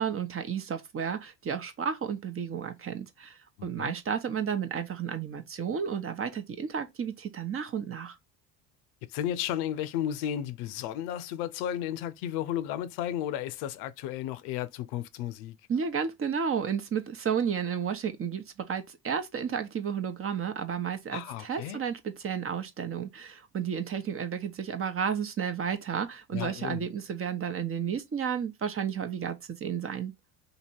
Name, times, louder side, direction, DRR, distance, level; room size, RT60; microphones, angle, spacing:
voice 1, 0.0-8.2 15.7-30.1, right 7 dB, 35° right, 0.9 m, -32 dB
voice 2, 3.6-3.9 9.1-15.6 21.1-21.8 26.3-26.8, left 11 dB, 70° left, 0.6 m, -33 dB
2.9 x 2.8 x 4.4 m
hypercardioid pair, 80°, 40 cm